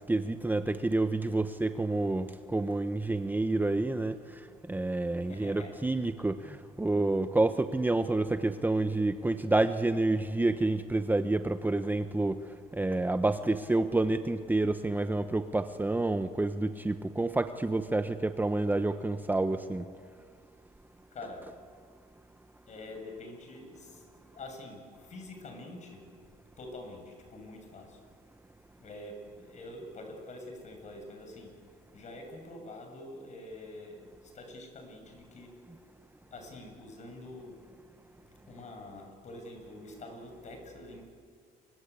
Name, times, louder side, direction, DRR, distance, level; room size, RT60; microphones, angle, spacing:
voice 1, 0.1-4.2 4.7-12.4 12.7-19.8, right 2 dB, 10° right, 9 dB, 0.9 m, -28 dB
voice 2, 5.3-5.8 21.1-21.5 22.7-26.1 26.6-28.0 28.8-31.6 31.9-35.6 36.3-37.7 38.5-41.1, left 2 dB, 45° left, 4 dB, 7.3 m, -46 dB
28.5 x 24.0 x 8.5 m, 2.1 s
cardioid pair, 110°, 17 cm